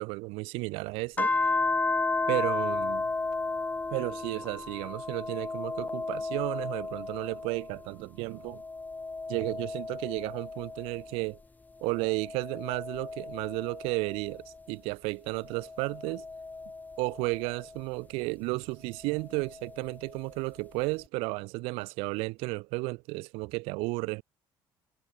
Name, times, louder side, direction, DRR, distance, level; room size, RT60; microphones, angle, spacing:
voice 1, 0.0-1.3 2.3-3.1 3.9-8.6 9.3-11.4 11.8-16.3 17.0-24.2, right 26 dB, 85° right, 0.8 m, -33 dB
sound 1, 1.2-7.9 8.3-11.2 11.8-14.6 15.4-17.8 19.2-20.2, left 3 dB, 15° left, 1.3 m, -34 dB
supercardioid pair, 95°, 10 cm